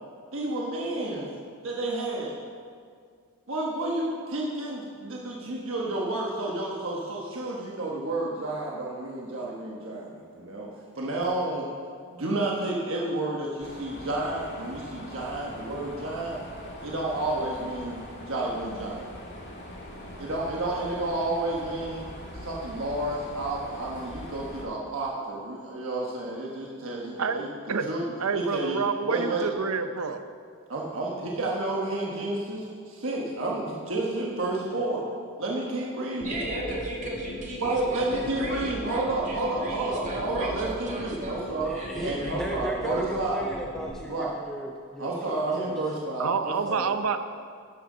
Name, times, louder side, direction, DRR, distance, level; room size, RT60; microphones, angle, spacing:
voice 1, 0.3-1.3 1.6-2.4 3.5-10.7 10.9-11.7 12.1-16.4 16.8-18.0 18.2-19.0 20.2-22.1 22.3-27.5 27.9-28.0 28.3-28.8 29.0-29.5 30.7-35.0 35.4-36.3 37.6-41.7 42.0-43.4 44.1-44.3 45.0-46.9, right 2 dB, 60° right, -3 dB, 1.3 m, -30 dB
Mechanisms, 13.6-24.6, equal, 50° left, 2.0 m, -42 dB
voice 2, 28.2-30.2 46.2-47.2, right 5 dB, 75° right, 9 dB, 0.7 m, -28 dB
sound 1, 36.2-43.9, left 1 dB, 70° left, 2.8 m, -38 dB
voice 3, 36.2-41.5 41.7-42.4, right 1 dB, 35° right, -3 dB, 2.1 m, -36 dB
voice 4, 41.6-45.7, right 1 dB, 5° left, 0 dB, 0.5 m, -36 dB
13.0 x 11.0 x 3.9 m, 2.1 s
head